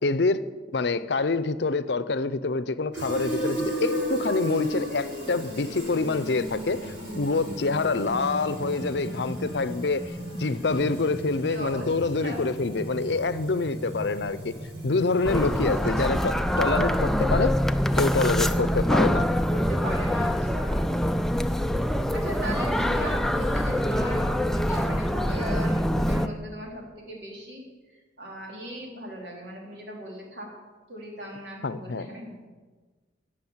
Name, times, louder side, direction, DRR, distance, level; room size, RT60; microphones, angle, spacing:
voice 1, 0.0-10.1 10.4-14.6 14.8-17.6 18.0-19.3 31.6-32.1, left 3 dB, 65° left, 14 dB, 0.6 m, -26 dB
Fill (with liquid), 2.9-16.0, right 1 dB, 85° right, 5.3 m, -35 dB
voice 2, 11.5-11.9 12.2-12.4 15.6-16.2 19.5-20.9 22.1-27.6 28.2-30.5 30.9-32.5, equal, 65° right, -2 dB, 3.7 m, -38 dB
sound 1, 15.2-26.3, equal, ahead, 0.4 m, -24 dB
17.5 x 6.6 x 7.3 m, 1.4 s
head